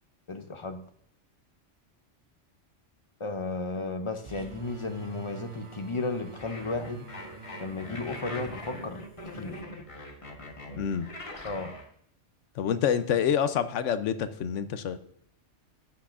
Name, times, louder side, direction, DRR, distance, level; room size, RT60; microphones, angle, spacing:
voice 1, 0.3-0.8 3.2-7.1 7.6-9.0 9.3-9.6 11.4-11.7, left 3 dB, 50° left, 8 dB, 0.3 m, -34 dB
sound 1, 4.2-9.6, right 5 dB, 35° right, 0.6 m, -46 dB
sound 2, 6.4-11.8, left 1 dB, 30° left, 1.1 m, -42 dB
voice 2, 10.7-11.1 12.6-15.0, left 8 dB, 85° left, 12 dB, 1.0 m, -27 dB
15.0 x 6.0 x 2.5 m, 0.68 s
omnidirectional pair, 1.3 m